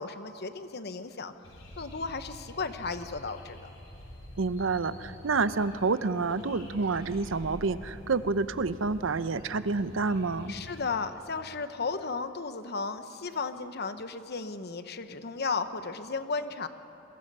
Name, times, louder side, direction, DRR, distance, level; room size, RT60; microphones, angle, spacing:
voice 1, 0.0-1.3 1.8-3.7 10.5-16.7, left 4 dB, 55° left, 10 dB, 1.0 m, -34 dB
sound 1, 1.4-10.8, left 1 dB, 80° left, 5.5 m, -47 dB
voice 2, 4.4-10.5, right 4 dB, 90° right, 14 dB, 0.7 m, -28 dB
28.5 x 22.5 x 5.6 m, 3.0 s
head